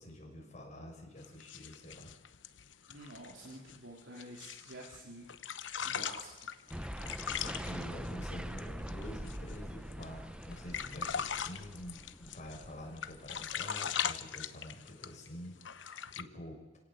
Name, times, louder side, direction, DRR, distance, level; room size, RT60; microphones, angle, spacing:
voice 1, 0.0-2.1 5.8-6.0 6.9-16.8, left 1 dB, 40° left, 0 dB, 6.2 m, -48 dB
sound 1, 1.2-5.0 5.3-9.6 9.9-10.1 10.4-12.7 13.0-15.3 15.6-16.2, left 8 dB, 85° left, 1.0 m, -40 dB
voice 2, 2.9-5.3 5.9-6.7, right 1 dB, 90° right, -1 dB, 3.4 m, -50 dB
sound 2, 6.7-13.7, equal, 5° right, 0.9 m, -44 dB
29.0 x 17.5 x 7.8 m, 1.2 s
head